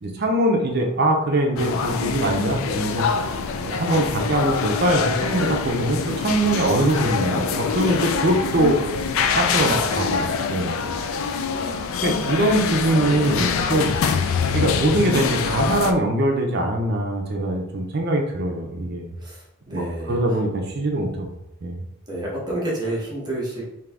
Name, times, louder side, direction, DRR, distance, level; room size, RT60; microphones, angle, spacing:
voice 1, 0.0-3.1 3.6-8.8 9.3-10.3 10.5-10.7 12.0-13.9 14.5-19.1 19.7-19.8 20.1-21.3 21.6-21.8, right 1 dB, 50° right, 2 dB, 0.6 m, -22 dB
sound 1, 1.6-15.9, left 5 dB, 75° left, 0.4 m, -25 dB
voice 2, 19.2-20.4 22.1-23.8, right 1 dB, 20° right, -5 dB, 1.0 m, -29 dB
3.7 x 2.7 x 3.4 m, 0.82 s
head